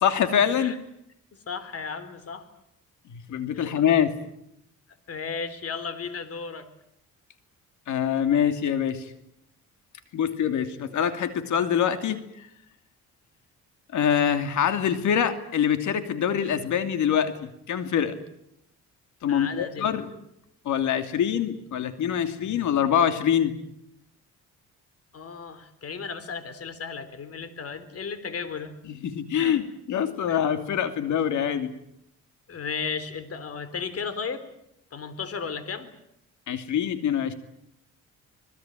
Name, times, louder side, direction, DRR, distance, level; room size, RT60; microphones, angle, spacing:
voice 1, 0.0-0.8 3.1-4.1 7.9-9.1 10.1-12.5 13.9-18.2 19.2-20.1 20.6-23.5 28.9-31.7 36.5-37.3, left 8 dB, 75° left, 9 dB, 2.7 m, -25 dB
voice 2, 1.3-2.5 3.5-3.9 5.1-6.7 19.3-19.9 25.1-28.8 29.4-29.6 30.3-30.4 32.5-34.4 34.9-35.9, left 5 dB, 50° left, 13 dB, 3.7 m, -35 dB
26.0 x 20.5 x 9.1 m, 0.77 s
cardioid pair, 90°, 30 cm